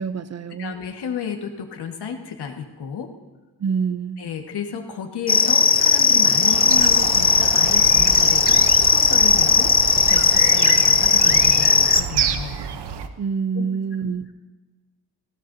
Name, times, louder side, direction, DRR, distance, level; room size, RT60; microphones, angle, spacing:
voice 1, 0.0-0.8 3.6-4.2 13.2-14.3, right 6 dB, 40° right, 14 dB, 0.6 m, -26 dB
voice 2, 0.6-3.1 4.2-9.7 10.1-12.6 13.5-13.7, left 7 dB, 70° left, 3 dB, 1.8 m, -32 dB
sound 1, 5.3-12.0, left 5 dB, 25° left, 0.5 m, -17 dB
sound 2, 6.4-13.1, right 7 dB, 75° right, 1.0 m, -29 dB
20.0 x 16.5 x 2.8 m, 1.3 s
cardioid pair, 95°, 41 cm